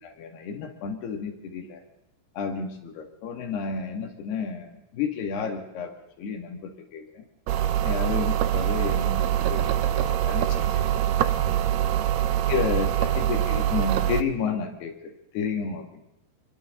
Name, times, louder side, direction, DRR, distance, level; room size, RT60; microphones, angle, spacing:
voice 1, 0.0-1.8 2.4-5.9 6.2-7.2 7.8-11.0 12.5-16.0, left 5 dB, 60° left, 3 dB, 4.1 m, -31 dB
sound 1, 7.5-14.2, right 11 dB, 75° right, 2.6 m, -24 dB
29.0 x 23.0 x 3.9 m, 0.81 s
omnidirectional pair, 5.4 m